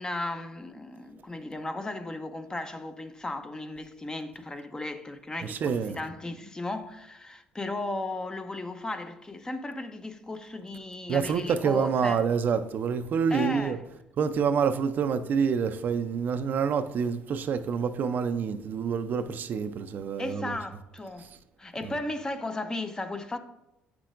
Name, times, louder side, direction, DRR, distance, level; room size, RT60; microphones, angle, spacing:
voice 1, 0.0-12.2 13.3-13.8 20.2-21.3 21.6-23.4, left 2 dB, 20° left, 0.7 m, -35 dB
voice 2, 5.4-6.0 11.1-13.8 14.2-20.5 21.2-21.3 21.8-21.9, right 6 dB, 55° right, 0.5 m, -27 dB
8.0 x 5.9 x 2.5 m
supercardioid pair, 75°, 4 cm